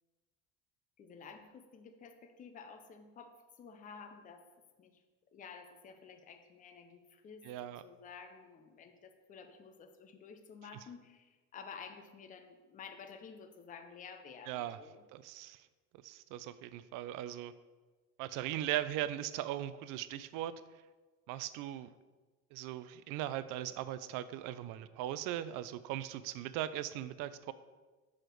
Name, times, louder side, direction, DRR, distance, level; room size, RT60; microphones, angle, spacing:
voice 1, 1.0-4.5 4.8-5.0 5.3-15.0, left 6 dB, 25° left, 7 dB, 0.5 m, -52 dB
voice 2, 7.5-7.8 14.5-14.8 15.1-15.6 16.0-17.5 18.2-20.5 21.3-21.9 22.5-27.5, right 13 dB, 70° right, 14 dB, 0.5 m, -39 dB
6.2 x 4.9 x 4.5 m, 1.3 s
cardioid pair, 145°, 34 cm